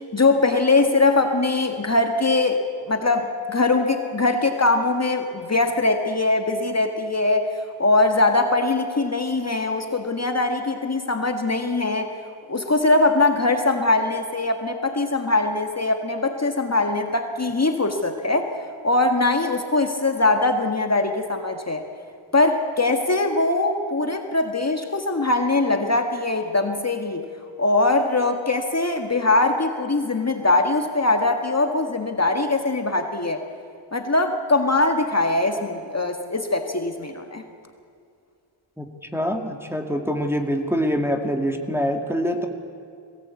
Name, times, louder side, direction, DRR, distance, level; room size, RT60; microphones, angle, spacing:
voice 1, 0.1-7.5 7.8-12.1 12.5-18.5 18.8-21.8 22.3-27.2 27.6-33.4 33.9-37.4, left 2 dB, 30° left, 4 dB, 1.7 m, -21 dB
voice 2, 39.1-42.5, equal, 5° right, 4 dB, 2.2 m, -24 dB
22.0 x 17.5 x 8.4 m, 2.4 s
wide cardioid pair, 70°, 50 cm